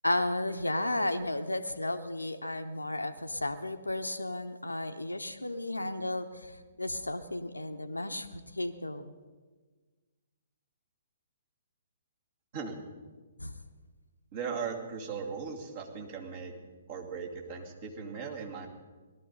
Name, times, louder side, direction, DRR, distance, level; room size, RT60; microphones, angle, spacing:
voice 1, 0.0-9.1 13.4-13.6, left 1 dB, 85° left, 8 dB, 0.8 m, -33 dB
voice 2, 14.3-16.5 16.9-18.7, right 5 dB, 45° right, 1 dB, 2.5 m, -38 dB
18.5 x 12.0 x 5.5 m, 1.4 s
figure-of-eight pair, 125°, 0 cm